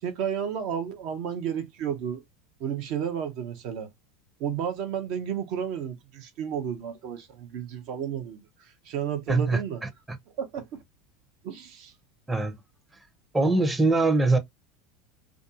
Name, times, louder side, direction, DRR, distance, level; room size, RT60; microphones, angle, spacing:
voice 1, 0.0-2.2 2.6-3.9 4.4-8.4 8.9-9.8 10.4-10.8 11.4-11.9, right 8 dB, 55° right, 0.7 m, -32 dB
voice 2, 9.3-10.2 12.3-12.5 13.3-14.4, right 3 dB, 10° right, 0.7 m, -23 dB
2.5 x 2.3 x 2.6 m
hypercardioid pair, 80°, 0 cm